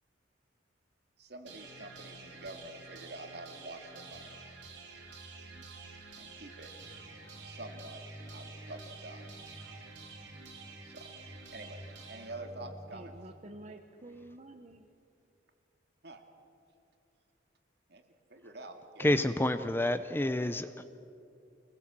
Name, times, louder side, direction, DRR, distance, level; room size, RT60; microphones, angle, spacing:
voice 1, 1.2-4.4 6.2-6.7 7.4-8.0 8.3-9.3 10.8-11.1 11.5-11.8 12.1-13.2 16.0-16.2 17.9-18.0 18.3-19.2, right 2 dB, 55° right, 5 dB, 2.3 m, -47 dB
sound 1, 1.5-13.4, right 3 dB, 70° right, 3.9 m, -48 dB
voice 2, 12.9-14.9, right 1 dB, 35° right, 5 dB, 0.9 m, -49 dB
voice 3, 19.0-20.8, left 1 dB, 10° left, 11 dB, 0.5 m, -29 dB
25.5 x 20.0 x 7.5 m, 2.6 s
head